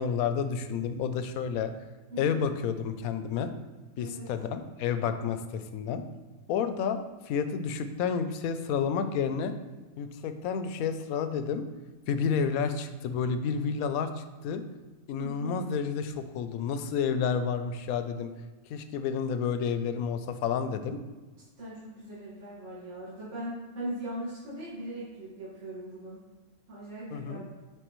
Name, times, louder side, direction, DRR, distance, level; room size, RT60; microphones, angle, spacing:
voice 1, 0.0-1.7 2.2-3.5 4.0-6.0 6.5-9.5 10.0-11.6 12.1-14.6 15.1-18.3 18.7-21.0 27.1-27.4, left 6 dB, 80° left, 9 dB, 1.0 m, -30 dB
voice 2, 4.0-4.3 15.2-15.5 21.6-26.2 26.7-27.4, right 1 dB, 55° right, -10 dB, 2.2 m, -39 dB
7.9 x 4.2 x 3.0 m, 1.3 s
omnidirectional pair, 1.5 m